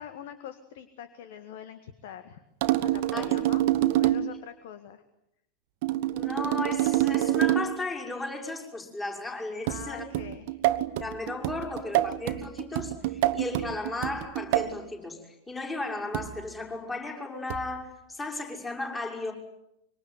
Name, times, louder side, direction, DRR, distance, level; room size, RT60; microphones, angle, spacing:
voice 1, 0.0-2.4 2.8-3.6 4.0-5.0 9.6-10.6, left 9 dB, 55° left, 11 dB, 1.8 m, -43 dB
sound 1, 2.6-4.4 5.8-7.8 9.7-14.8 16.1-16.5 17.5-17.8, right 14 dB, 50° right, 1.1 m, -27 dB
voice 2, 6.1-10.1 11.0-19.3, left 2 dB, 15° left, 1 dB, 6.0 m, -35 dB
25.5 x 24.5 x 9.6 m, 0.82 s
figure-of-eight pair, 90°, 0 cm